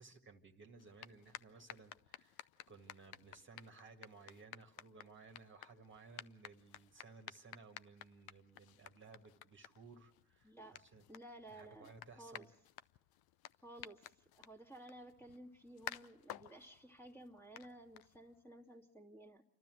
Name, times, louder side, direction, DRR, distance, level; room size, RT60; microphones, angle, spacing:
voice 1, 0.0-11.0 11.5-12.5, right 4 dB, 25° right, 4 dB, 1.9 m, -59 dB
sound 1, 0.8-18.5, left 13 dB, 50° left, 0.7 m, -55 dB
voice 2, 10.4-10.8 11.1-11.9 12.2-12.5 13.6-19.4, right 1 dB, 5° left, 4 dB, 2.1 m, -55 dB
28.5 x 12.5 x 7.7 m, 0.86 s
hypercardioid pair, 90°, 49 cm